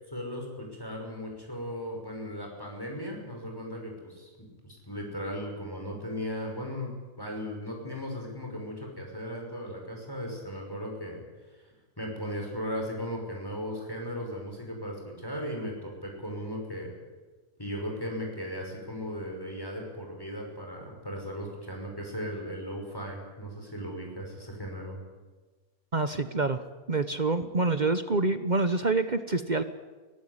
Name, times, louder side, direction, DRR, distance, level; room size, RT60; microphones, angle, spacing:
voice 1, 0.1-11.2 11.6-16.9 17.6-25.0, equal, 15° left, 1 dB, 5.7 m, -37 dB
voice 2, 25.9-26.6 26.9-29.6, right 3 dB, 35° right, 10 dB, 1.0 m, -26 dB
23.0 x 17.5 x 9.8 m, 1.3 s
omnidirectional pair, 1.5 m